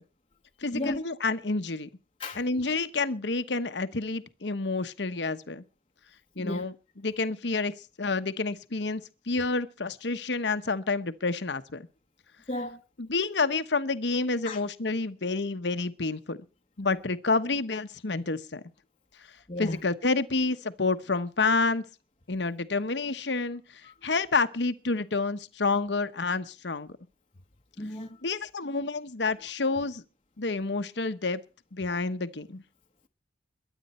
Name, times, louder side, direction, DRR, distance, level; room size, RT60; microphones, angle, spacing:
voice 1, 0.6-1.9 2.3-5.6 6.4-6.7 7.0-9.0 9.3-11.9 13.0-16.4 16.8-18.6 19.6-21.8 22.3-23.6 24.0-26.9 28.2-30.0 30.4-31.4 31.7-32.6, left 3 dB, 85° left, 1.1 m, -29 dB
voice 2, 12.5-12.8 14.4-14.6 19.5-19.8 27.8-28.2, left 1 dB, 30° left, 1.0 m, -33 dB
22.5 x 9.2 x 4.3 m
head